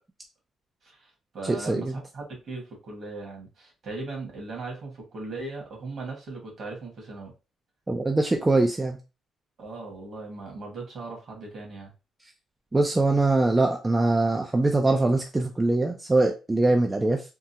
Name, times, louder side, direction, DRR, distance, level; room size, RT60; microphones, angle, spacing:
voice 1, 0.8-7.3 9.6-11.9, right 3 dB, 55° right, -1 dB, 1.6 m, -38 dB
voice 2, 1.5-1.9 7.9-9.0 12.7-17.2, right 2 dB, 15° right, 2 dB, 0.4 m, -22 dB
3.6 x 2.0 x 2.7 m, 0.29 s
cardioid pair, 115°, 0 cm